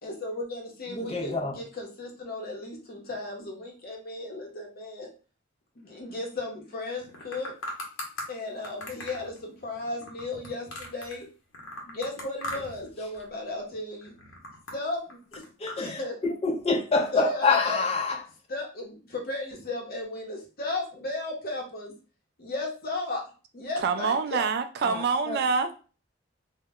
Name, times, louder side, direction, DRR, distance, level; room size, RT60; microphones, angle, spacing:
voice 1, 0.0-5.1 5.8-7.5 8.3-11.3 11.9-14.1 14.7-15.5 15.8-16.2 17.1-17.9 18.5-21.9 22.4-23.2 23.5-24.5, left 2 dB, 50° left, 0.8 m, -35 dB
voice 2, 0.9-1.5 15.6-18.2 24.8-25.4, left 4 dB, 30° left, 0.4 m, -27 dB
sound 1, 7.0-8.3 8.6-11.2 11.5-12.9 13.1-13.6 14.0-15.8, left 1 dB, 80° left, 0.8 m, -39 dB
voice 3, 23.8-25.8, right 5 dB, 55° right, 0.3 m, -26 dB
2.2 x 2.1 x 3.4 m
head